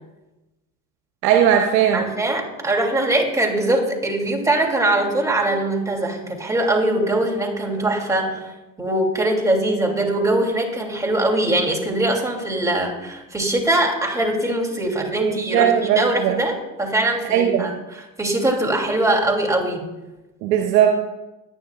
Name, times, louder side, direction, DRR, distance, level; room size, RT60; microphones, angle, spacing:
voice 1, 1.2-2.1 15.2-16.4 17.2-17.8 20.4-20.9, right 9 dB, 75° right, 4 dB, 1.1 m, -18 dB
voice 2, 1.9-8.5 8.8-17.7 18.2-19.9, right 1 dB, 5° right, 0 dB, 3.2 m, -22 dB
19.0 x 9.9 x 2.5 m, 1.0 s
hypercardioid pair, 75°, 49 cm